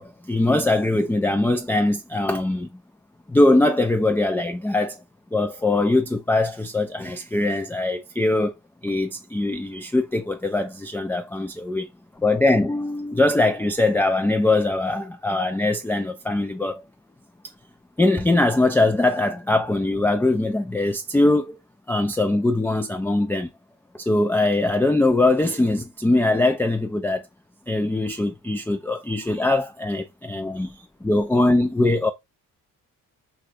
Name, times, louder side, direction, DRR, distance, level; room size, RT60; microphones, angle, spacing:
voice 1, 0.0-2.7 3.3-5.0 5.3-8.5 8.8-11.9 12.2-16.8 18.0-21.6 21.9-23.5 23.9-27.2 27.7-32.1, left 2 dB, 5° left, 0.4 m, -22 dB
3.1 x 2.4 x 2.7 m
supercardioid pair, 50°, 42 cm